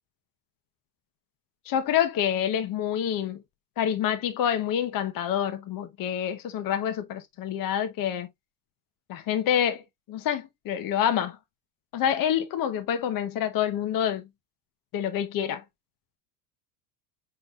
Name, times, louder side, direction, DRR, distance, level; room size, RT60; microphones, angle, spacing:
voice 1, 1.7-3.4 3.8-8.3 9.1-9.8 10.1-11.4 11.9-14.3 14.9-15.6, left 9 dB, 45° left, 1.0 m, -27 dB
5.3 x 4.1 x 2.4 m
supercardioid pair, 100°, 46 cm